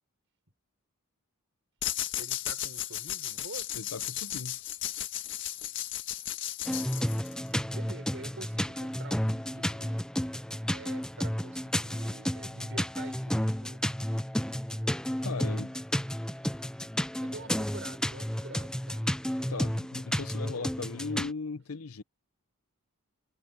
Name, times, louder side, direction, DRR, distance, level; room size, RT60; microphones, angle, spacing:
sound 1, 1.8-7.5, left 12 dB, 60° left, 1.6 m, -35 dB
voice 1, 2.2-3.8 7.6-10.0 10.7-13.8 16.3-16.4 17.2-19.0, right 2 dB, 60° right, 6.8 m, -47 dB
voice 2, 3.7-4.6 15.2-15.7 19.5-22.0, left 4 dB, 75° left, 0.8 m, -38 dB
sound 2, 6.7-21.3, equal, 5° left, 0.6 m, -32 dB
head